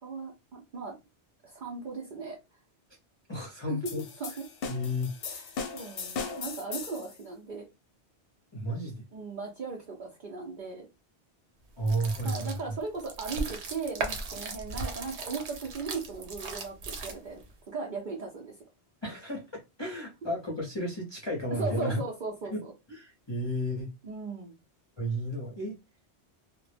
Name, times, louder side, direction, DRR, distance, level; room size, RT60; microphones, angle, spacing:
voice 1, 0.0-1.0 1.4-2.4 3.4-3.8 4.2-4.4 5.2-7.7 9.1-10.9 12.2-18.6 21.5-22.7 24.0-24.5, right 4 dB, 55° right, 0.7 m, -38 dB
voice 2, 3.3-4.0 4.7-5.1 8.5-8.9 11.8-12.6 19.0-19.4 19.8-22.0 22.5-22.6 22.9-23.9 25.0-25.7, equal, 30° left, 0.6 m, -32 dB
sound 1, 3.9-7.1, left 5 dB, 65° left, 0.7 m, -38 dB
sound 2, 11.8-17.5, right 3 dB, 85° right, 0.9 m, -37 dB
2.1 x 2.0 x 3.2 m
omnidirectional pair, 1.1 m